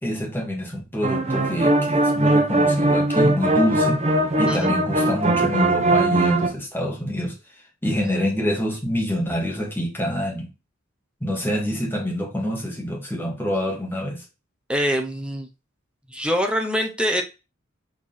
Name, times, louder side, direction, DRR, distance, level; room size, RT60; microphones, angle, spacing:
voice 1, 0.0-4.0 4.4-7.4 7.8-10.5 11.2-14.2, equal, 10° left, 0 dB, 2.2 m, -26 dB
sound 1, 1.0-6.5, right 1 dB, 30° right, 1.1 m, -20 dB
voice 2, 14.7-15.5 16.1-17.2, equal, 5° right, 4 dB, 0.9 m, -24 dB
4.7 x 4.5 x 5.8 m, 0.28 s
head